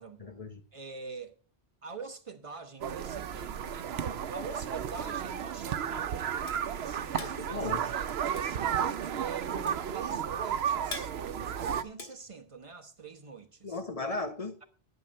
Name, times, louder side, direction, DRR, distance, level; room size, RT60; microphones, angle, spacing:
voice 1, 0.2-0.6 7.1-7.8 13.6-14.6, left 3 dB, 35° left, 1.1 m, -36 dB
voice 2, 0.7-1.4 1.8-6.2 6.8-13.8, right 5 dB, 30° right, 1.1 m, -45 dB
sound 1, 2.8-11.8, right 8 dB, 80° right, 0.9 m, -33 dB
sound 2, 6.5-13.0, left 3 dB, 85° left, 2.1 m, -46 dB
11.0 x 7.7 x 5.4 m
omnidirectional pair, 1.1 m